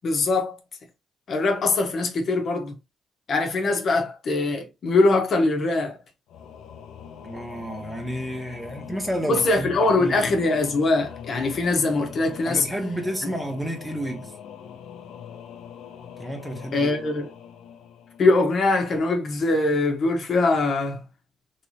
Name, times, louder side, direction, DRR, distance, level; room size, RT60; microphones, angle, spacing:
voice 1, 0.0-0.6 1.3-2.7 3.3-6.0 9.3-12.7 16.7-17.3 18.2-21.0, left 2 dB, 55° left, 1.0 m, -22 dB
Singing / Musical instrument, 6.3-18.8, left 8 dB, 80° left, 0.6 m, -42 dB
voice 2, 7.2-9.7 9.9-10.2 12.5-14.3 16.2-16.9, equal, 10° right, 1.1 m, -31 dB
3.3 x 3.1 x 2.7 m
cardioid pair, 90°, 0 cm